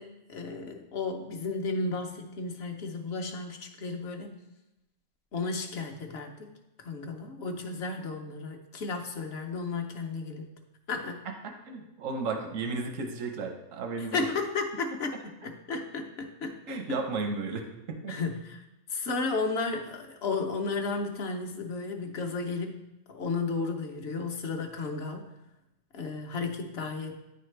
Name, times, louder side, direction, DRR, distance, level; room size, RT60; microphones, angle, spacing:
voice 1, 0.0-4.3 5.3-6.5 6.8-10.4 10.9-11.3 14.0-15.2 15.4-16.6 18.1-18.6 18.9-25.2 25.9-27.1, left 3 dB, 60° left, 4 dB, 0.9 m, -33 dB
voice 2, 11.3-14.3 16.7-18.2, right 4 dB, 85° right, 4 dB, 1.1 m, -34 dB
9.5 x 4.1 x 3.2 m, 0.93 s
omnidirectional pair, 1.3 m